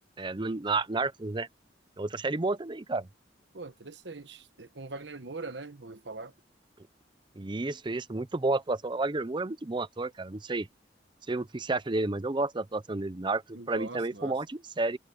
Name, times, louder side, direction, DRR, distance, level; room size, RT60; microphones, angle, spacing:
voice 1, 0.2-1.5 2.0-3.1 7.4-10.7 11.3-15.0, right 3 dB, 25° right, 0.6 m, -31 dB
voice 2, 3.5-6.3 13.5-14.4, right 3 dB, 70° right, 1.3 m, -42 dB
open air
head